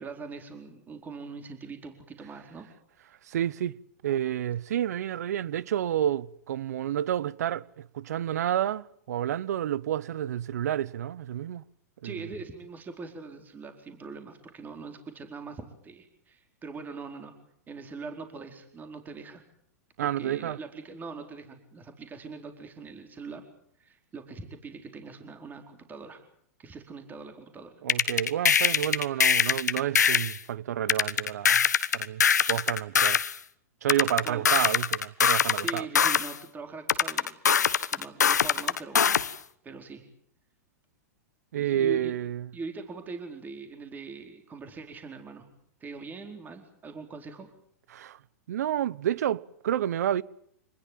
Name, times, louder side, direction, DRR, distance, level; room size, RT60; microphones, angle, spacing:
voice 1, 0.0-2.7 12.0-17.3 17.7-19.4 20.0-23.4 23.8-26.2 26.6-27.7 34.2-34.4 35.6-37.4 37.9-39.0 39.6-40.0 41.6-42.1 42.5-45.5 45.8-47.5, right 4 dB, 20° right, 4.4 m, -42 dB
voice 2, 3.3-3.8 4.0-11.6 12.0-12.3 20.0-20.6 27.8-31.6 31.9-33.2 33.8-35.9 41.5-42.5 47.9-48.2 48.5-50.2, right 11 dB, 70° right, 0.9 m, -30 dB
sound 1, 27.9-30.4 30.9-33.3 33.9-36.3 36.9-39.3, left 7 dB, 90° left, 1.2 m, -23 dB
26.5 x 20.5 x 7.5 m
hypercardioid pair, 115°, 9 cm